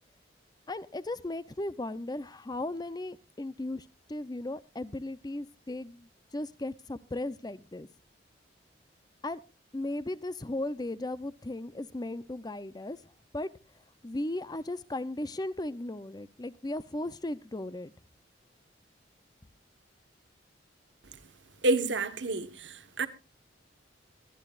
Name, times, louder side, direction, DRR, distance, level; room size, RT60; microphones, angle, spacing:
voice 1, 0.7-6.1 6.3-7.9 9.2-9.4 9.7-13.0 13.3-13.5 14.0-17.9, left 1 dB, 20° left, 0.6 m, -36 dB
voice 2, 21.6-23.1, right 2 dB, 75° right, 1.4 m, -29 dB
22.5 x 11.5 x 2.5 m
head